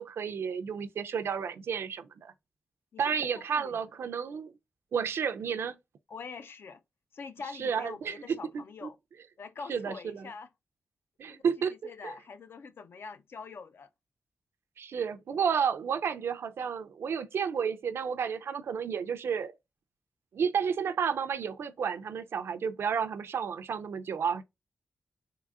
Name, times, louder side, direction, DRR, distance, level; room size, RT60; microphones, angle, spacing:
voice 1, 0.0-2.3 3.0-4.5 4.9-5.8 7.6-8.9 9.7-10.3 11.2-11.7 12.0-12.1 14.8-19.5 20.3-24.4, right 7 dB, 85° right, 0.4 m, -31 dB
voice 2, 2.9-3.8 6.1-6.8 7.1-9.0 9.4-10.5 11.3-11.4 11.8-13.9, left 5 dB, 65° left, 0.4 m, -44 dB
3.7 x 3.1 x 2.4 m
wide cardioid pair, 105°, 4 cm